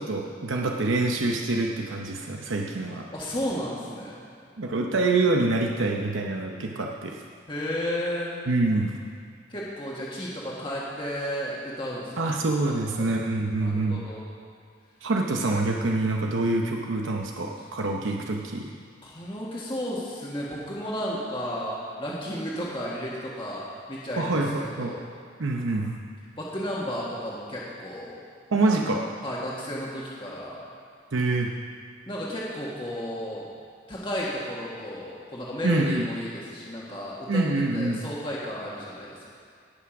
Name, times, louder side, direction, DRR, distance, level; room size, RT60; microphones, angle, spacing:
voice 1, 0.0-3.1 4.6-7.2 8.5-9.0 12.2-14.1 15.0-18.7 24.2-24.9 25.4-26.0 28.5-29.0 31.1-31.5 35.6-36.1 37.3-38.0, right 2 dB, 85° right, 1 dB, 0.8 m, -26 dB
voice 2, 3.1-4.2 7.5-8.4 9.5-12.1 12.6-13.1 13.6-14.2 19.0-25.1 26.4-28.1 28.7-30.6 32.1-33.4 33.9-37.4 37.7-39.3, equal, 25° left, -6 dB, 1.6 m, -33 dB
18.0 x 6.0 x 6.0 m, 2.3 s
head